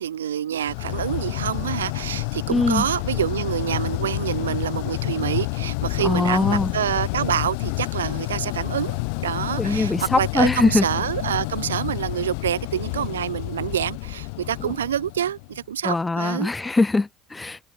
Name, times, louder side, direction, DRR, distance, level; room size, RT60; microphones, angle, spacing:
voice 1, 0.0-9.0 9.2-16.5, right 10 dB, 85° right, 0.6 m, -27 dB
sound 1, 0.6-15.6, left 34 dB, 65° left, 1.7 m, -29 dB
voice 2, 2.5-2.9 6.0-6.7 9.6-10.9 14.6-14.7 15.8-17.6, left 3 dB, 15° left, 0.3 m, -22 dB
open air
hypercardioid pair, 70°, 0 cm